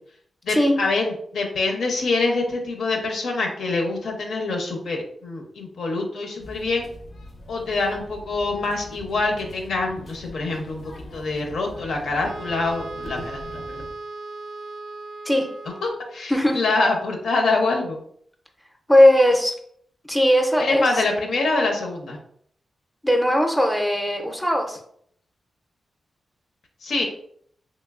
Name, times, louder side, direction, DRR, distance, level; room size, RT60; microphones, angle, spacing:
voice 1, 0.5-6.9 7.5-13.8 15.8-18.0 20.6-22.2 26.8-27.0, left 3 dB, 90° left, 1 dB, 0.6 m, -25 dB
sound 1, 6.4-13.9, left 1 dB, 55° left, 0.5 m, -42 dB
Wind instrument woodwind instrument, 12.2-16.3, right 3 dB, 70° right, 0.4 m, -37 dB
voice 2, 18.9-19.5 20.0-21.0 23.0-24.8, left 1 dB, 5° left, 2 dB, 0.5 m, -18 dB
3.0 x 2.9 x 2.4 m, 0.65 s
wide cardioid pair, 110°, 0 cm